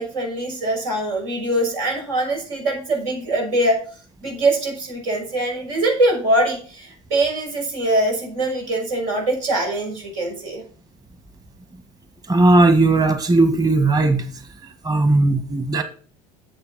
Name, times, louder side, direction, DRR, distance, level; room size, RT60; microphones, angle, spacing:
voice 1, 0.0-3.8 4.2-10.6, right 1 dB, 85° right, 1 dB, 6.3 m, -23 dB
voice 2, 12.3-14.3 14.8-15.8, right 2 dB, 20° right, 8 dB, 1.6 m, -17 dB
11.0 x 7.4 x 4.2 m, 0.40 s
supercardioid pair, 95°, 17 cm